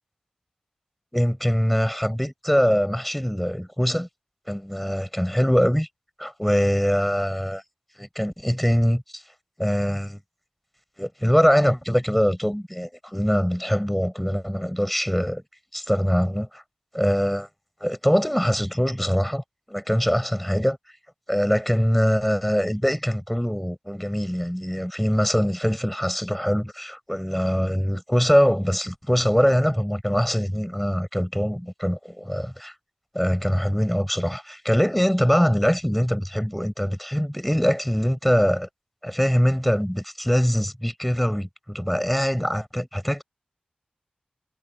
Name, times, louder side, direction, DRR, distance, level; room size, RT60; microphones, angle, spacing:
voice 1, 1.1-4.1 4.5-5.9 6.2-7.6 8.0-9.2 9.6-10.2 11.0-15.4 15.7-16.6 16.9-17.5 17.8-20.8 21.3-32.7 33.1-38.7 39.0-43.2, equal, 5° left, 6.1 m, -23 dB
wide cardioid pair, 60°, 3 cm